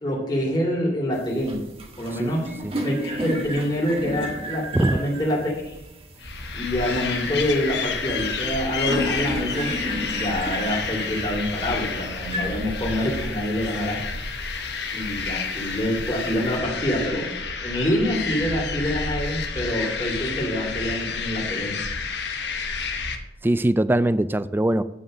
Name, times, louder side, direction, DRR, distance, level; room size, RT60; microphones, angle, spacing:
voice 1, 0.0-1.6 2.0-2.5 2.8-5.7 6.5-9.7 10.1-14.0 14.9-17.3 17.6-21.8, equal, 25° left, -3 dB, 2.4 m, -26 dB
sound 1, 1.1-16.6, equal, 35° right, 1.5 m, -34 dB
voice 2, 2.1-2.8 4.7-5.0 23.4-24.8, right 1 dB, 10° right, 14 dB, 0.3 m, -22 dB
sound 2, 6.2-23.2, left 4 dB, 75° left, 1.2 m, -30 dB
9.6 x 5.3 x 7.4 m, 0.91 s
head